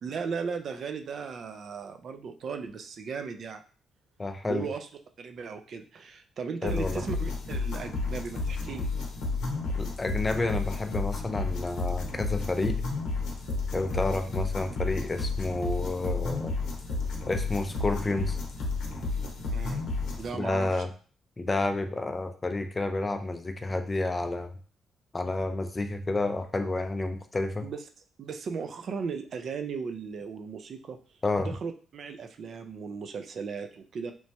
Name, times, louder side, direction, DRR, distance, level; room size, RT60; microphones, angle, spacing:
voice 1, 0.0-3.6 4.4-4.8 5.2-8.9 19.5-19.8 20.2-20.9 27.6-27.8 28.2-34.1, right 5 dB, 55° right, 7 dB, 0.3 m, -36 dB
voice 2, 4.2-4.6 6.6-7.0 9.7-12.8 13.7-16.5 17.3-18.4 20.3-20.9 21.4-24.6 25.1-27.6 31.2-31.5, left 2 dB, 25° left, 7 dB, 0.3 m, -30 dB
sound 1, 6.7-20.3, left 3 dB, 75° left, 0.7 m, -32 dB
3.0 x 2.2 x 2.8 m, 0.41 s
cardioid pair, 90°, 0 cm